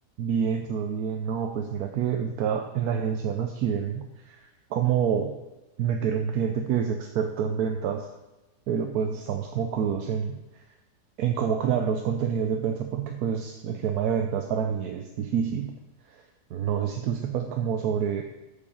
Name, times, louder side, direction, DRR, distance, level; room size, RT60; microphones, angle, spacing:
voice 1, 0.2-5.4 5.8-8.1 8.7-10.6 11.2-15.7 16.1-16.2 16.5-18.2, right 7 dB, 65° right, 4 dB, 1.1 m, -27 dB
8.6 x 5.3 x 7.1 m, 1.0 s
omnidirectional pair, 1.8 m